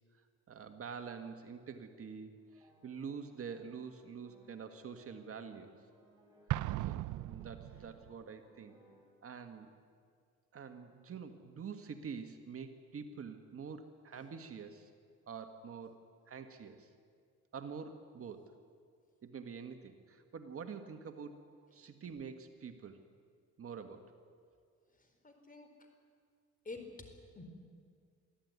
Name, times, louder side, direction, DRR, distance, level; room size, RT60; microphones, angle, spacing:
voice 1, 0.5-5.7 6.8-7.0 7.3-8.8 9.2-9.7 10.5-14.9 15.3-16.9 17.5-18.4 19.2-21.4 21.7-23.0 23.6-24.0, right 6 dB, 50° right, 7 dB, 1.8 m, -46 dB
sound 1, 2.4-9.2, equal, 15° right, 6.6 m, -66 dB
Explosion, 6.5-8.1, right 15 dB, 75° right, 0.6 m, -37 dB
voice 2, 24.9-25.9 26.6-26.9 27.4-27.5, left 3 dB, 25° left, 6 dB, 4.3 m, -49 dB
23.5 x 15.0 x 9.6 m, 2.1 s
cardioid pair, 90°, 30 cm